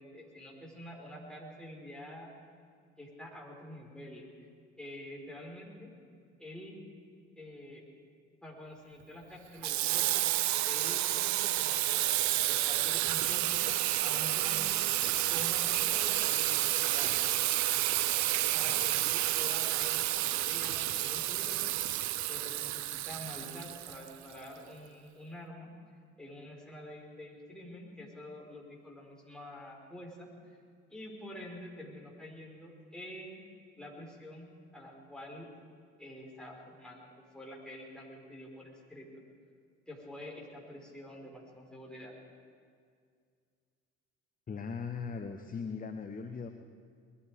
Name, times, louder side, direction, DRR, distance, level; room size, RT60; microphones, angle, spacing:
voice 1, 0.0-2.3 3.0-4.3 4.8-5.9 6.4-6.8 7.4-7.8 8.4-10.3 10.6-13.6 14.0-14.8 15.3-17.3 18.5-21.7 22.3-25.7 26.2-30.6 30.9-33.4 33.8-35.5 36.0-39.1 39.9-42.1, left 1 dB, ahead, -3 dB, 4.8 m, -47 dB
Water tap faucet / Sink (filling or washing), 9.6-24.4, right 15 dB, 50° right, 0.6 m, -30 dB
voice 2, 44.5-46.5, left 5 dB, 25° left, 7 dB, 1.0 m, -39 dB
21.0 x 13.0 x 5.0 m, 2.2 s
hypercardioid pair, 55°, 36 cm